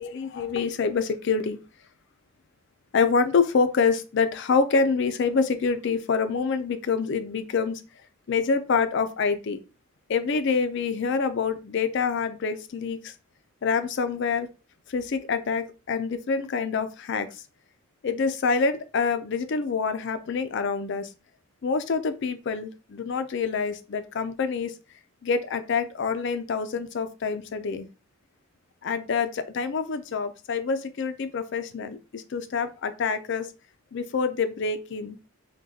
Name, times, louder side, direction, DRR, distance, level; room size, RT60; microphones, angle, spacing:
voice 1, 0.0-1.6 2.9-7.8 8.3-9.6 10.1-13.1 13.6-14.5 14.9-17.4 18.0-21.1 21.6-24.8 25.2-27.9 28.8-33.5 33.9-35.2, left 5 dB, 55° left, 11 dB, 0.4 m, -26 dB
6.1 x 2.2 x 2.7 m, 0.32 s
head